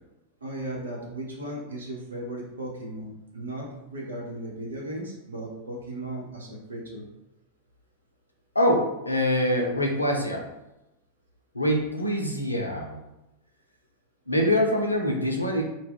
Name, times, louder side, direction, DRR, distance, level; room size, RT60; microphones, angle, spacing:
voice 1, 0.4-7.1, right 1 dB, 70° right, -2 dB, 0.7 m, -36 dB
voice 2, 8.5-10.5 11.5-13.0 14.3-15.6, left 1 dB, 85° left, 1 dB, 0.5 m, -24 dB
2.2 x 2.0 x 3.4 m, 0.93 s
figure-of-eight pair, 90°, 0 cm